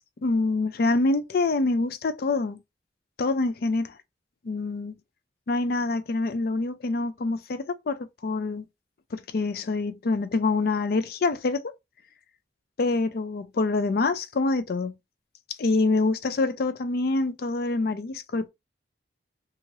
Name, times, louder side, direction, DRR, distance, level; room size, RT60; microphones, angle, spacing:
voice 1, 0.2-2.6 3.2-3.9 4.4-4.9 5.5-8.6 9.1-11.6 12.8-15.0 15.6-18.5, left 3 dB, 55° left, 0.4 m, -26 dB
2.8 x 2.4 x 3.0 m
head